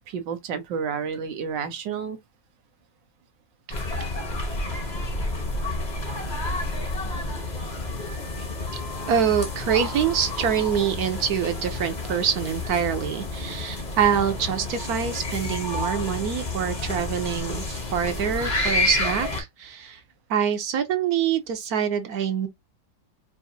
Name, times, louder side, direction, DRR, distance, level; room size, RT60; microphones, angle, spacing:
voice 1, 0.1-2.2, right 6 dB, 90° right, 1.5 m, -30 dB
sound 1, 3.7-19.4, left 2 dB, 30° left, 1.1 m, -30 dB
voice 2, 8.7-20.0 20.3-22.5, right 8 dB, 65° right, 1.2 m, -25 dB
4.9 x 2.7 x 2.7 m
omnidirectional pair, 1.9 m